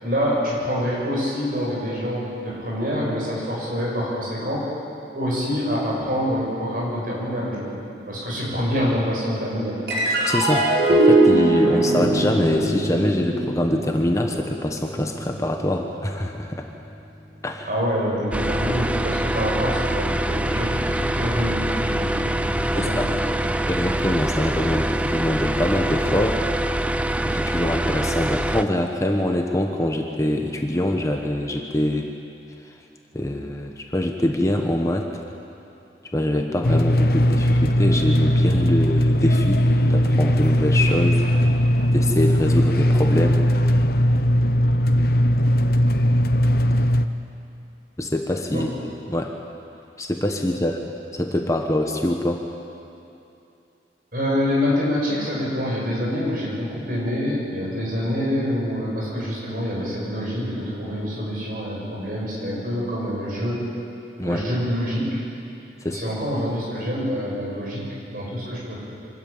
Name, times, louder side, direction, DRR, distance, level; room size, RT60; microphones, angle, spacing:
voice 1, 0.0-4.7 5.1-9.8 17.7-23.2 48.5-48.6 54.1-63.7 64.2-65.2 65.8-68.8, equal, 50° right, -5 dB, 7.4 m, -26 dB
sound 1, 9.9-16.6, right 2 dB, 80° right, 5.3 m, -21 dB
voice 2, 10.2-16.7 17.4-17.7 22.8-23.1 23.7-26.4 27.2-32.1 33.1-35.2 36.1-41.2 41.9-43.4 45.0-45.2 48.0-49.3 50.0-52.4 64.2-64.4 65.8-66.0, left 1 dB, 20° left, 3 dB, 1.1 m, -24 dB
sound 2, 18.3-28.6, right 1 dB, 5° right, 0.5 m, -24 dB
sound 3, 36.6-47.1, equal, 55° left, 0.8 m, -19 dB
25.0 x 13.5 x 8.8 m, 2.8 s
head